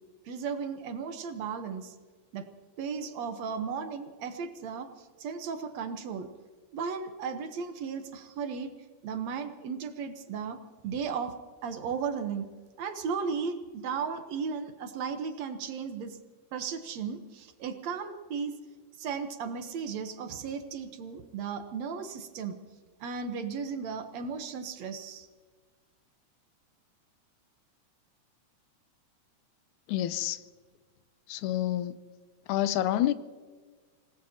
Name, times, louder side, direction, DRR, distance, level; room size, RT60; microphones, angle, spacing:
voice 1, 0.3-2.0 2.3-2.5 2.8-6.3 6.7-8.7 9.0-11.4 11.6-12.5 12.8-16.2 16.5-18.6 19.0-22.6 23.0-25.3, right 6 dB, 65° right, 2.1 m, -35 dB
voice 2, 29.9-30.4 31.3-32.0 32.5-33.1, left 13 dB, 85° left, 2.1 m, -28 dB
26.5 x 19.0 x 2.8 m
omnidirectional pair, 3.5 m